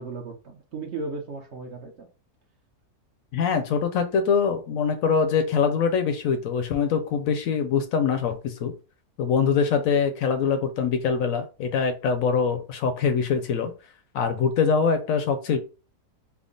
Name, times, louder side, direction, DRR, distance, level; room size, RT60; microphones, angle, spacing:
voice 1, 0.0-2.1, right 3 dB, 55° right, 2 dB, 0.8 m, -35 dB
voice 2, 3.3-8.7 9.2-13.7 14.1-15.6, left 6 dB, 70° left, 8 dB, 0.9 m, -23 dB
3.6 x 2.0 x 3.8 m, 0.33 s
omnidirectional pair, 1.6 m